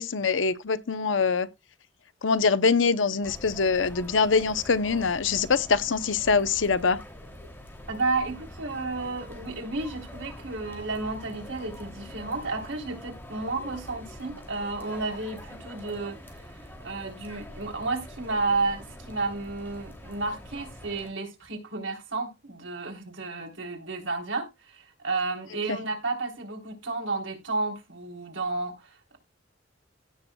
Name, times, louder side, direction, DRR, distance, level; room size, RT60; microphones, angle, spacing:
voice 1, 0.0-1.5 2.2-7.0, left 5 dB, 90° left, 0.8 m, -24 dB
sound 1, 3.2-21.1, left 1 dB, 10° left, 2.9 m, -44 dB
voice 2, 7.9-16.2 16.8-29.2, right 3 dB, 85° right, 3.5 m, -32 dB
16.5 x 6.9 x 2.3 m
head